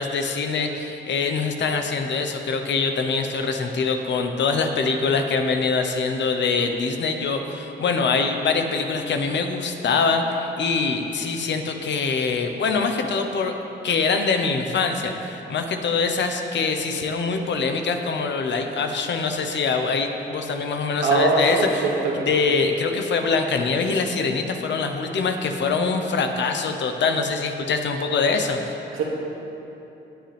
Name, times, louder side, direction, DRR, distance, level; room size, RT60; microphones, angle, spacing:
voice 1, 0.0-13.5 13.8-28.6, left 4 dB, 65° left, 5 dB, 1.1 m, -24 dB
voice 2, 20.9-21.9 22.2-22.3 28.9-29.0, right 3 dB, 85° right, -5 dB, 2.4 m, -21 dB
18.5 x 7.8 x 3.5 m, 3.0 s
cardioid pair, 75°, 20 cm